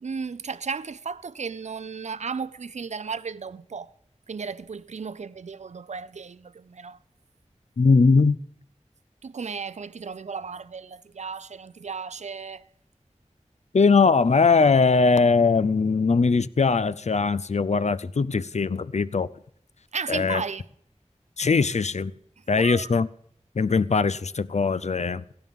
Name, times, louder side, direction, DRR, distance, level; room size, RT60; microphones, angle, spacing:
voice 1, 0.0-3.9 4.3-7.0 9.2-12.7 19.9-20.6 22.4-22.9, right 5 dB, 70° right, 0.4 m, -34 dB
voice 2, 7.8-8.4 13.7-19.3 20.1-20.4 21.4-22.1 22.5-23.1 23.6-25.2, left 4 dB, 65° left, 0.4 m, -20 dB
16.5 x 14.5 x 3.6 m
wide cardioid pair, 45°, 12 cm